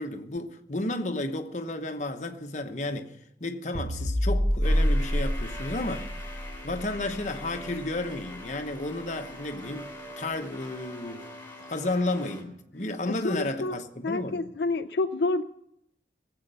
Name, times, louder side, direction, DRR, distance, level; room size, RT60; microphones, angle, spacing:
voice 1, 0.0-6.1 6.6-9.9 10.2-11.3 11.6-14.5, left 2 dB, 45° left, 1.0 m, -32 dB
sound 1, 3.7-8.2, equal, 20° right, 1.0 m, -28 dB
sound 2, 4.6-12.4, left 1 dB, 15° left, 3.2 m, -43 dB
voice 2, 13.2-13.8 14.0-15.4, left 2 dB, 70° left, 0.4 m, -28 dB
19.0 x 8.0 x 6.8 m
head